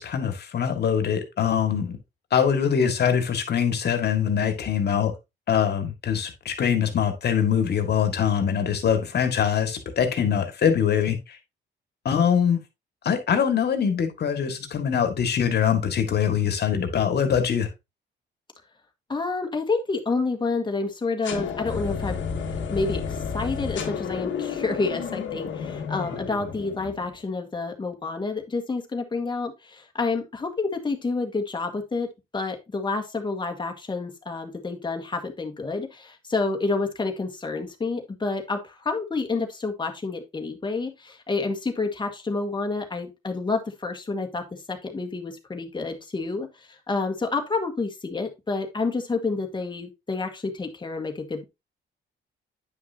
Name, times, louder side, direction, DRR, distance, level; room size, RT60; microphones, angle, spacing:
voice 1, 0.0-2.0 2.3-5.1 5.5-11.4 12.1-12.6 13.0-17.7, left 8 dB, 55° left, 1.8 m, -23 dB
voice 2, 19.1-22.2 22.7-32.1 32.3-46.5 46.9-51.4, left 3 dB, 25° left, 1.7 m, -29 dB
sound 1, 21.2-27.2, left 6 dB, 70° left, 1.6 m, -31 dB
9.3 x 5.9 x 2.7 m
cardioid pair, 90°, 20 cm